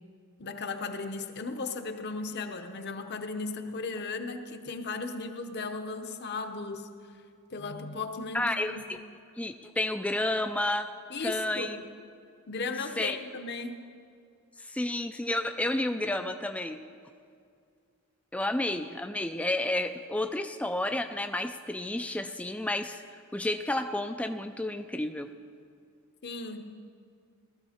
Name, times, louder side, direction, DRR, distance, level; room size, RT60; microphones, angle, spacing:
voice 1, 0.4-6.9 7.5-8.8 11.1-11.9 12.5-13.8 26.2-26.7, left 3 dB, 50° left, 7 dB, 0.8 m, -36 dB
voice 2, 8.3-9.0 9.4-10.9 11.2-11.8 13.0-13.2 14.6-16.8 18.3-25.3, left 1 dB, 5° left, 7 dB, 0.3 m, -31 dB
18.5 x 13.0 x 4.3 m, 2.3 s
head